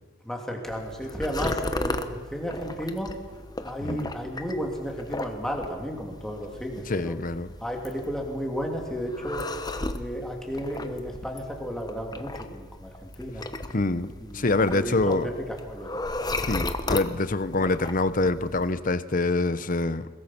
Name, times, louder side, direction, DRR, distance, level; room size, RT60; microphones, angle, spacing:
voice 1, 0.2-3.1 3.6-7.1 7.6-9.4 9.9-13.4 14.2-15.3 15.7-15.9, equal, 5° left, 0 dB, 3.3 m, -33 dB
sound 1, 0.7-18.7, left 2 dB, 20° left, 1.1 m, -36 dB
voice 2, 6.9-7.5 13.7-15.3 16.5-20.1, left 2 dB, 45° left, 14 dB, 0.9 m, -25 dB
22.0 x 21.5 x 6.1 m, 1.3 s
head